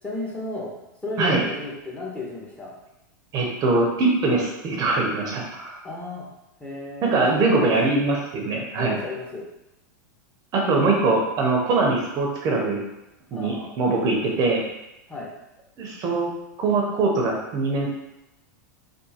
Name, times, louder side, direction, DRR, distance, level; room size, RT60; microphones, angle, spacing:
voice 1, 0.0-0.7 1.0-2.7 5.8-6.3 6.6-7.1 7.4-7.7 8.8-9.4 13.3-13.7 15.1-15.3, left 2 dB, 10° left, -4 dB, 0.9 m, -33 dB
voice 2, 3.3-5.8 7.0-9.0 10.5-12.8 13.3-14.6 15.8-16.3 16.6-17.9, right 3 dB, 40° right, -1 dB, 0.7 m, -22 dB
3.6 x 2.5 x 2.8 m, 0.91 s
hypercardioid pair, 120°, 10 cm